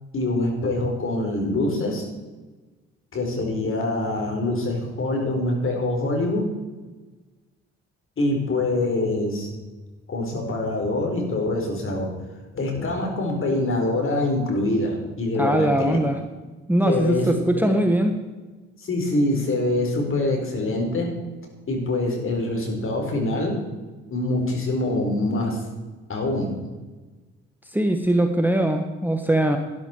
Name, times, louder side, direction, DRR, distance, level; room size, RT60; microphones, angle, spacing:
voice 1, 0.1-2.0 3.1-6.5 8.2-9.5 10.1-12.1 12.5-16.0 16.8-17.8 18.8-21.1 21.7-23.6 24.1-25.6 26.1-26.5, left 2 dB, 45° left, 2 dB, 4.3 m, -24 dB
voice 2, 15.3-16.2 16.7-18.1 27.7-29.6, right 1 dB, 5° right, 5 dB, 1.3 m, -21 dB
12.5 x 10.5 x 4.5 m, 1.2 s
supercardioid pair, 60°, 29 cm